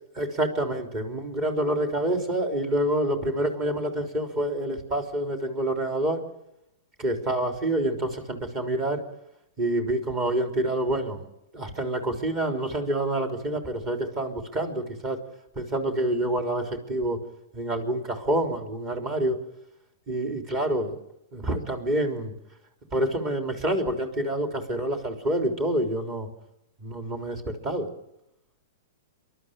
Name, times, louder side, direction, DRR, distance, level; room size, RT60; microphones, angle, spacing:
voice 1, 0.2-6.2 7.0-9.0 9.6-11.3 11.5-15.2 15.6-17.2 17.5-19.4 20.1-21.0 21.3-22.3 22.9-26.3 26.8-27.9, right 1 dB, 35° right, 4 dB, 3.6 m, -27 dB
27.5 x 12.0 x 8.9 m, 0.85 s
hypercardioid pair, 110°, 0 cm